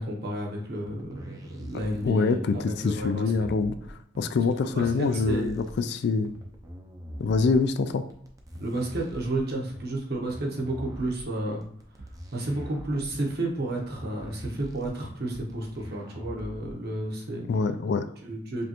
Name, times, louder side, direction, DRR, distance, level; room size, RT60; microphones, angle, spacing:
voice 1, 0.0-3.5 4.6-5.5 8.6-11.6 12.3-17.5 18.2-18.7, right 1 dB, 50° right, -1 dB, 1.0 m, -32 dB
sound 1, 0.9-1.0 1.9-2.0 3.0-3.1 4.1-4.3 5.2-5.4 6.3-6.5 7.4-7.6 8.5-8.8 9.7-9.9 10.8-11.0 12.0-12.2 13.1-13.3 14.2-14.4 15.3-15.5 16.4-16.6, right 1 dB, 90° right, 0.9 m, -46 dB
sound 2, 1.0-17.0, equal, 15° right, 0.5 m, -44 dB
voice 2, 2.0-3.8 4.2-6.3 7.2-8.0 17.5-18.1, left 4 dB, 55° left, 10 dB, 0.3 m, -25 dB
5.2 x 2.4 x 2.9 m, 0.67 s
head